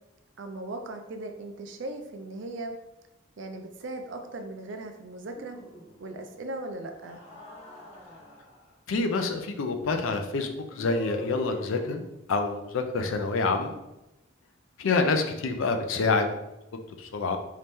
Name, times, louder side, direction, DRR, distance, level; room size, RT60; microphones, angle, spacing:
voice 1, 0.4-2.8 3.4-5.6 6.0-7.2, right 2 dB, 60° right, 6 dB, 0.4 m, -38 dB
sound 1, 5.3-6.2 6.9-8.7 10.7-12.2, equal, 30° left, 0.7 m, -43 dB
voice 2, 8.9-12.0 12.3-13.7 14.8-16.3 17.0-17.4, left 3 dB, 70° left, 6 dB, 0.4 m, -27 dB
3.1 x 2.8 x 3.4 m, 0.93 s
head